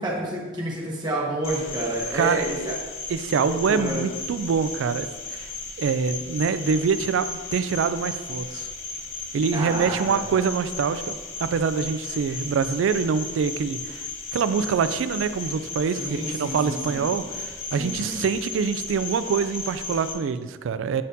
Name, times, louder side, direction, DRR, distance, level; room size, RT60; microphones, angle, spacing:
voice 1, 0.0-2.7 3.4-4.0 9.5-10.2 16.0-17.0 17.8-18.3, right 1 dB, 20° right, -5 dB, 1.3 m, -29 dB
Cricket, 1.4-20.1, left 3 dB, 85° left, 0.7 m, -35 dB
voice 2, 2.1-2.7 3.1-5.5 5.8-8.7 9.3-14.1 14.3-21.0, right 6 dB, 80° right, 13 dB, 0.3 m, -25 dB
8.5 x 4.2 x 2.7 m, 1.3 s
head